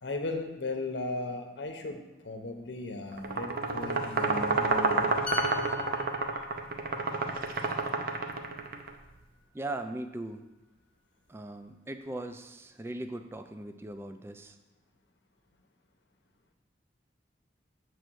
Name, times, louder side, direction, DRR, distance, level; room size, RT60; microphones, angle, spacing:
voice 1, 0.0-5.1, left 2 dB, 75° left, 5 dB, 0.8 m, -36 dB
sound 1, 3.2-8.9, right 3 dB, 55° right, 0.6 m, -29 dB
sound 2, 5.3-8.9 9.2-9.4, left 2 dB, 10° left, 0.8 m, -42 dB
voice 2, 9.5-10.5 11.3-14.6, right 1 dB, 15° right, 7 dB, 0.3 m, -39 dB
7.6 x 3.2 x 6.2 m, 1.1 s
head